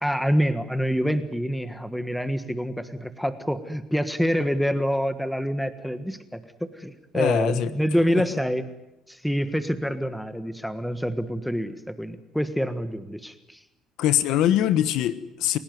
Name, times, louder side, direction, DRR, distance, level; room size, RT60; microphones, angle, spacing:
voice 1, 0.0-8.6 9.1-13.6, equal, ahead, 10 dB, 1.5 m, -26 dB
voice 2, 7.1-7.7 8.1-8.2 14.0-15.6, left 12 dB, 80° left, 13 dB, 1.2 m, -23 dB
29.5 x 17.0 x 9.5 m, 0.90 s
cardioid pair, 125°, 0 cm